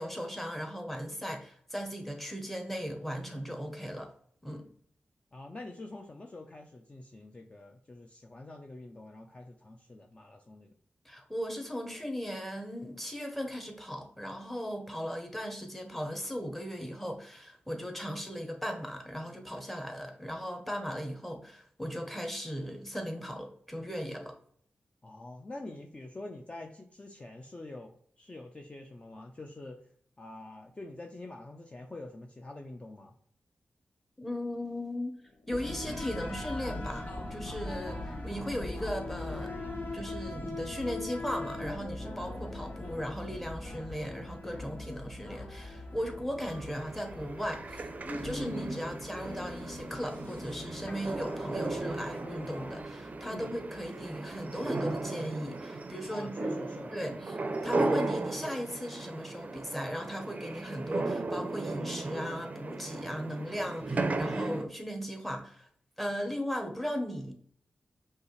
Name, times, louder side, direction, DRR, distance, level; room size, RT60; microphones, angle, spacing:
voice 1, 0.0-4.1 4.4-4.7 11.0-24.4 34.2-35.2 35.5-47.8 48.2-56.3 56.9-65.7 66.0-67.3, equal, 5° left, 0.9 m, -37 dB
voice 2, 5.3-10.7 25.0-29.8 30.2-33.1 53.3-53.5 56.1-57.2, left 2 dB, 30° left, 0.5 m, -46 dB
sound 1, 35.3-55.0, left 1 dB, 75° left, 0.8 m, -44 dB
sound 2, 35.6-52.8, left 2 dB, 45° left, 1.2 m, -43 dB
sound 3, 46.5-64.6, right 2 dB, 40° right, 0.5 m, -36 dB
5.4 x 2.4 x 3.1 m
cardioid pair, 65°, 4 cm